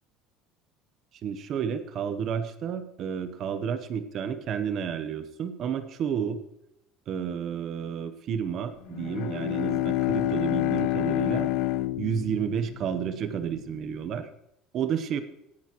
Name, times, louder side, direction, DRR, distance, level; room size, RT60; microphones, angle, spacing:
voice 1, 1.2-6.4 7.1-11.5 12.0-14.3 14.7-15.2, right 8 dB, 35° right, 11 dB, 0.9 m, -31 dB
Bowed string instrument, 8.9-13.5, left 16 dB, 60° left, 0.4 m, -28 dB
17.5 x 10.5 x 3.1 m, 0.83 s
cardioid pair, 170°, 0 cm